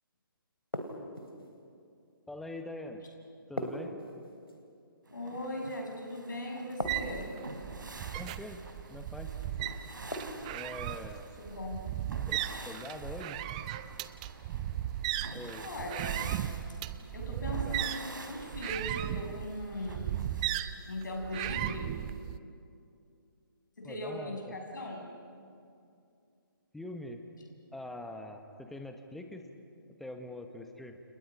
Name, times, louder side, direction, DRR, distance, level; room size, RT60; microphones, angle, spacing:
sound 1, 0.7-1.5 3.6-4.6 6.8-7.5 10.1-10.7, equal, 85° left, 3.5 m, -38 dB
voice 1, 2.3-3.1 3.5-4.0 8.1-8.6 8.9-9.3 10.5-11.3 12.3-13.4 15.3-15.7 17.5-17.9 23.8-24.5 26.7-27.2 27.7-29.5 30.0-31.0, left 1 dB, ahead, 6 dB, 1.1 m, -43 dB
voice 2, 5.1-7.3 11.4-11.8 15.6-16.4 17.1-20.1 20.9-21.9 23.8-25.1, left 1 dB, 55° left, 1 dB, 6.8 m, -39 dB
sound 2, 5.1-20.6, right 2 dB, 60° right, 3.1 m, -48 dB
sound 3, 6.8-22.4, right 12 dB, 20° right, 0.5 m, -36 dB
30.0 x 29.5 x 5.3 m, 2.5 s
figure-of-eight pair, 140°, 12 cm